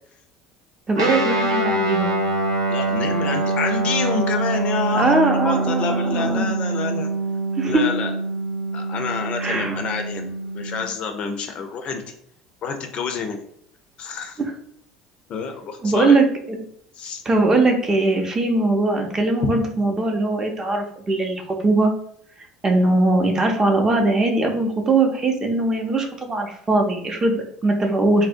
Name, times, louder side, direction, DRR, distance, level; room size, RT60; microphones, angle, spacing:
voice 1, 0.9-2.2 4.9-6.5 7.6-7.8 9.4-9.8 14.4-14.5 15.8-16.6 17.2-21.9 22.6-28.3, right 2 dB, 20° right, 3 dB, 0.5 m, -20 dB
Guitar, 0.9-10.9, right 2 dB, 85° right, 0.4 m, -24 dB
voice 2, 2.7-7.1 7.6-8.1 8.7-12.1 12.6-13.4 14.0-14.4 15.3-16.2 17.0-17.2 19.4-19.5, left 5 dB, 45° left, 5 dB, 0.4 m, -28 dB
2.5 x 2.1 x 2.5 m, 0.66 s
figure-of-eight pair, 65°, 3 cm